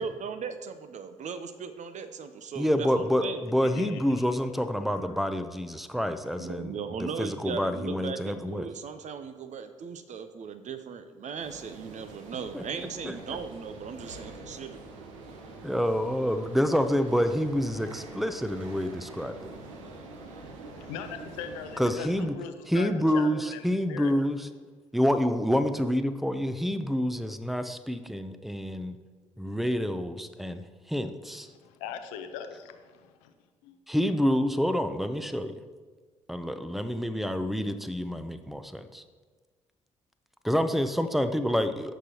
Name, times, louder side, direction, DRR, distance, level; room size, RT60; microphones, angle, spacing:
voice 1, 0.0-3.4 6.4-14.8, right 6 dB, 50° right, 9 dB, 0.7 m, -38 dB
voice 2, 2.6-6.7 7.0-8.7 12.5-12.6 13.0-13.1 15.6-19.4 21.8-22.3 22.7-24.5 24.9-29.0 29.4-31.5 33.9-35.6 36.3-39.0 40.4-42.0, equal, ahead, 10 dB, 0.7 m, -28 dB
voice 3, 3.6-4.2 4.9-5.4 6.2-6.5 20.7-24.2 31.5-33.3 33.6-33.8, left 7 dB, 75° left, 7 dB, 0.7 m, -41 dB
sound 1, 11.4-22.2, right 3 dB, 80° right, 0.9 m, -45 dB
14.5 x 6.1 x 3.0 m, 1.5 s
figure-of-eight pair, 45°, 16 cm